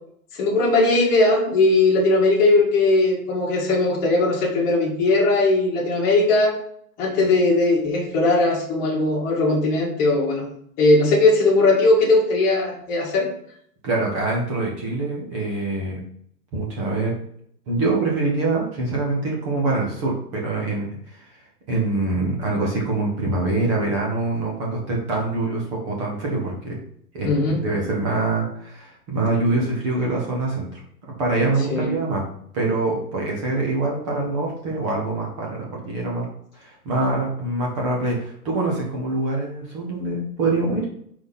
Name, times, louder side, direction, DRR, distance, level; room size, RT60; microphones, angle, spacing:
voice 1, 0.3-6.6 7.0-10.4 10.8-13.3 27.2-27.6 31.7-31.9, left 2 dB, 20° left, -4 dB, 1.5 m, -19 dB
voice 2, 13.8-16.0 16.5-17.2 17.7-20.9 21.2-21.3 21.7-26.8 27.1-27.3 27.6-30.8 31.2-32.3 32.5-36.3 36.5-40.9, right 2 dB, 20° right, -2 dB, 0.9 m, -24 dB
4.8 x 4.2 x 5.5 m, 0.66 s
hypercardioid pair, 165°, 48 cm